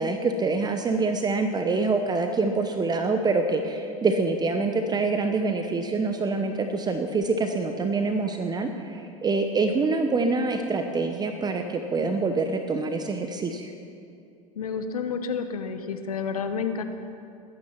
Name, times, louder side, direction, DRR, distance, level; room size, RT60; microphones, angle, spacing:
voice 1, 0.0-13.7, right 3 dB, 20° right, 6 dB, 1.0 m, -25 dB
voice 2, 14.6-16.8, left 6 dB, 85° left, 8 dB, 1.0 m, -30 dB
19.5 x 10.0 x 5.8 m, 2.5 s
hypercardioid pair, 90°, 18 cm